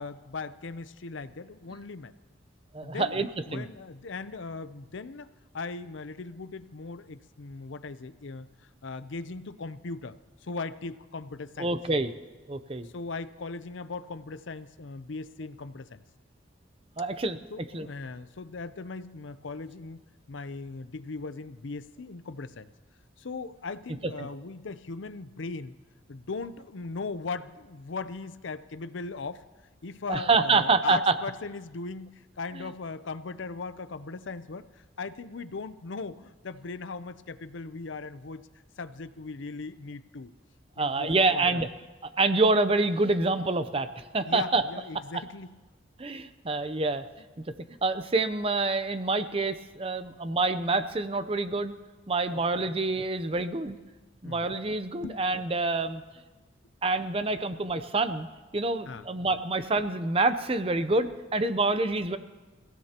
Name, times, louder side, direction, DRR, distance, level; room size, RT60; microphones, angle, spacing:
voice 1, 0.0-2.1 2.8-5.3 5.5-8.5 8.8-11.7 12.8-16.0 17.5-20.0 20.3-22.7 23.2-25.8 26.1-29.4 29.8-38.5 38.8-40.3 40.8-41.6 44.2-45.5 52.3-52.7 54.2-54.4 55.0-55.2 58.9-59.1, left 4 dB, 70° left, 13 dB, 0.6 m, -38 dB
voice 2, 2.7-3.6 11.6-12.1 12.5-12.9 17.0-17.4 17.7-17.9 30.1-31.1 40.8-41.7 42.2-44.6 46.0-47.1 47.8-51.7 52.1-53.8 54.2-56.0 56.8-58.3 58.5-62.2, right 3 dB, 30° right, 10 dB, 0.6 m, -26 dB
29.0 x 16.5 x 2.9 m, 1.2 s
head